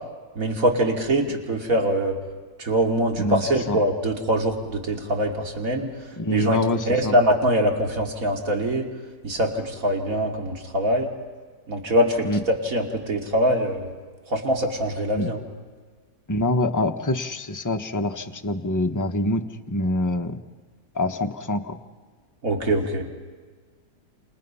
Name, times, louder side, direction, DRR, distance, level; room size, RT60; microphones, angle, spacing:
voice 1, 0.3-2.1 2.6-5.9 6.3-6.6 6.9-8.9 9.2-11.1 11.7-13.9 14.3-15.4 22.4-23.0, equal, 50° right, 2 dB, 3.1 m, -23 dB
voice 2, 6.2-7.1 12.2-12.4 15.1-15.3 16.3-20.3 20.9-21.8, left 1 dB, 15° left, 5 dB, 0.9 m, -25 dB
30.0 x 28.0 x 5.7 m, 1.5 s
omnidirectional pair, 1.9 m